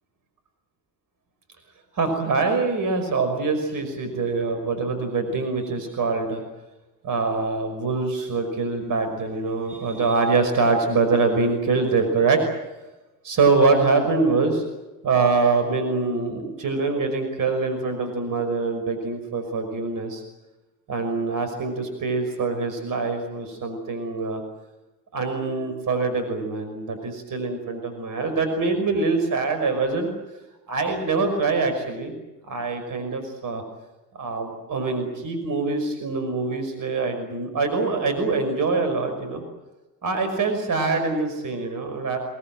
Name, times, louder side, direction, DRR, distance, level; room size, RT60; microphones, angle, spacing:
voice 1, 1.9-6.4 7.0-12.4 13.2-14.6 15.0-20.2 20.9-24.4 25.1-30.1 30.7-32.2 32.5-33.6 34.1-39.4 40.0-42.2, right 4 dB, 40° right, 7 dB, 5.8 m, -24 dB
27.0 x 20.0 x 7.9 m, 1.1 s
hypercardioid pair, 65°, 47 cm